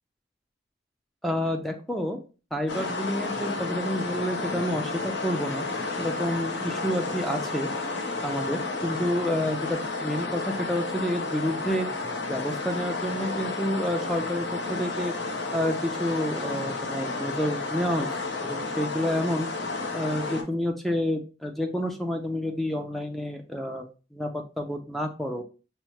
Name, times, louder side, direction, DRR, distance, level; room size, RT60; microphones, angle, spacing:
voice 1, 1.2-2.2 2.5-5.7 6.0-7.7 8.2-11.9 12.3-15.1 15.5-18.1 18.4-19.5 19.9-23.8 24.1-25.4, equal, ahead, 4 dB, 0.3 m, -29 dB
sound 1, 2.7-20.4, left 3 dB, 65° left, 0.7 m, -31 dB
5.5 x 2.1 x 3.0 m, 0.34 s
head